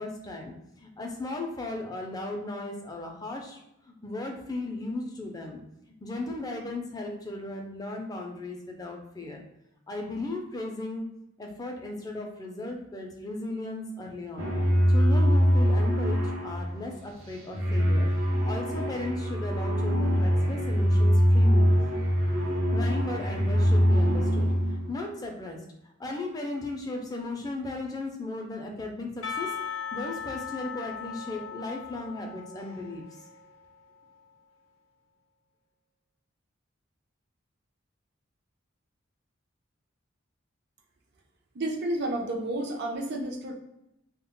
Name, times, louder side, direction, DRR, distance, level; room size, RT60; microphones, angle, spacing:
voice 1, 0.0-3.6 3.9-5.6 6.0-9.4 9.9-11.0 11.4-14.5 14.9-18.1 18.4-21.7 22.7-33.0, left 2 dB, 20° left, 1 dB, 0.4 m, -36 dB
sound 1, 14.4-24.9, equal, 80° right, 0.8 m, -23 dB
Percussion / Church bell, 29.2-34.2, left 7 dB, 85° left, 0.5 m, -38 dB
voice 2, 41.5-43.5, right 1 dB, 55° right, 2 dB, 0.5 m, -31 dB
2.1 x 2.0 x 3.6 m, 0.85 s
head